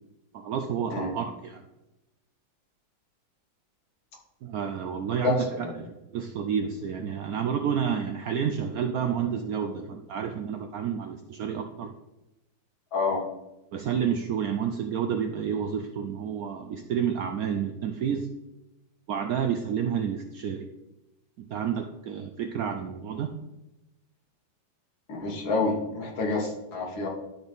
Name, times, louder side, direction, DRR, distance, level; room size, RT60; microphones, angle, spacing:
voice 1, 0.3-1.6 4.4-11.9 13.1-13.2 13.7-18.3 19.1-20.7 21.5-23.3, right 8 dB, 75° right, 6 dB, 0.8 m, -30 dB
voice 2, 5.2-5.7 12.9-13.2 25.1-27.1, left 3 dB, 80° left, -1 dB, 2.3 m, -28 dB
12.0 x 4.0 x 3.5 m, 0.98 s
omnidirectional pair, 2.1 m